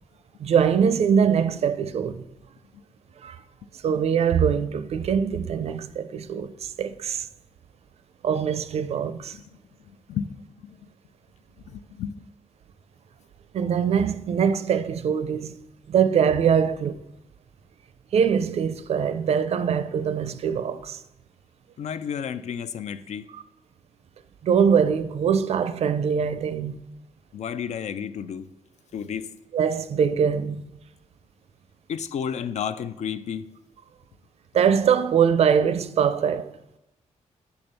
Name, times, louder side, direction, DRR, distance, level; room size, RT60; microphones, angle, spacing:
voice 1, 0.4-2.2 3.2-3.4 3.8-7.3 8.2-9.3 13.5-15.5 15.9-17.0 18.1-21.0 23.3-23.4 24.4-26.8 29.5-30.6 34.5-36.5, right 7 dB, 55° right, 0.5 m, -23 dB
voice 2, 11.7-12.2 21.8-23.3 27.3-28.4 28.9-29.3 31.9-33.5, left 8 dB, 65° left, 0.4 m, -31 dB
8.4 x 3.4 x 6.6 m
wide cardioid pair, 135°, 13 cm